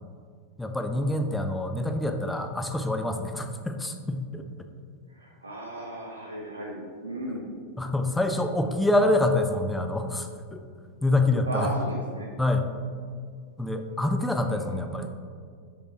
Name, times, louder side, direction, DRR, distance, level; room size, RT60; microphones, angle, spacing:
voice 1, 0.6-4.5 7.8-10.6 11.0-11.7 12.4-12.6 13.6-15.1, left 2 dB, 5° left, 6 dB, 0.6 m, -26 dB
voice 2, 5.1-7.5 11.4-12.3 14.5-14.8, equal, 80° right, -3 dB, 0.9 m, -35 dB
6.5 x 5.2 x 4.6 m, 2.1 s
figure-of-eight pair, 90°, 0 cm